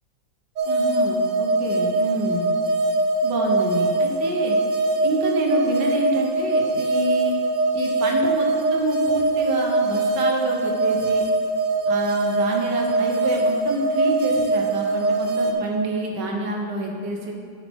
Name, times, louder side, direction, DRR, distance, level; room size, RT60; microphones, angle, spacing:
sound 1, 0.6-15.5, right 2 dB, 60° right, 0.9 m, -22 dB
voice 1, 0.6-2.5 3.2-4.6 5.0-7.4 7.7-11.2 11.9-17.3, right 1 dB, 85° right, 1 dB, 1.7 m, -27 dB
8.8 x 7.2 x 3.6 m, 2.2 s
omnidirectional pair, 1.8 m